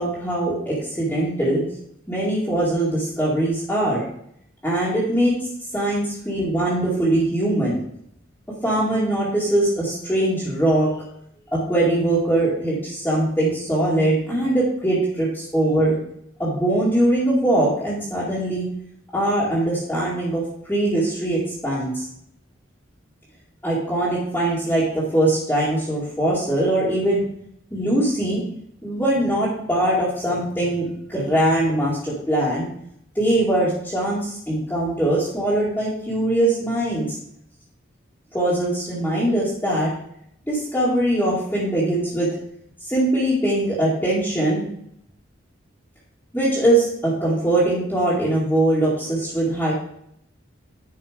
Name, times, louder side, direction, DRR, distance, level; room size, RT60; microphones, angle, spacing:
voice 1, 0.0-1.6 2.1-4.0 4.6-5.4 5.7-7.8 8.6-10.9 11.5-16.0 16.4-18.7 19.1-22.0 23.6-27.2 27.7-28.4 28.8-32.7 33.1-37.2 38.3-39.9 40.5-42.3 42.8-44.7 46.3-49.7, right 1 dB, 10° left, -9 dB, 2.3 m, -21 dB
10.5 x 4.9 x 5.1 m, 0.70 s
head